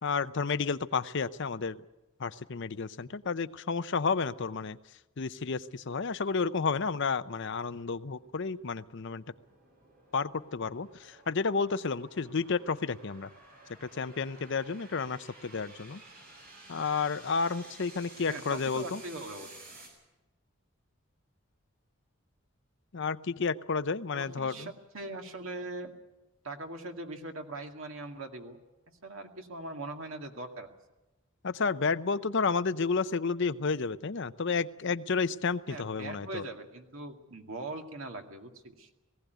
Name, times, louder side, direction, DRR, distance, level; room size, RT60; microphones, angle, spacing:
voice 1, 0.0-1.8 2.2-4.8 5.2-9.2 10.1-13.3 13.8-16.0 16.7-19.0 22.9-24.7 31.4-36.4, left 5 dB, 55° left, 14 dB, 0.6 m, -31 dB
sound 1, 6.1-19.9, right 2 dB, 45° right, 6.9 m, -54 dB
voice 2, 18.3-19.6 24.1-25.9 26.4-28.6 29.0-30.7 35.7-38.9, right 2 dB, 70° right, 4 dB, 2.2 m, -41 dB
19.0 x 16.5 x 9.3 m, 1.0 s
head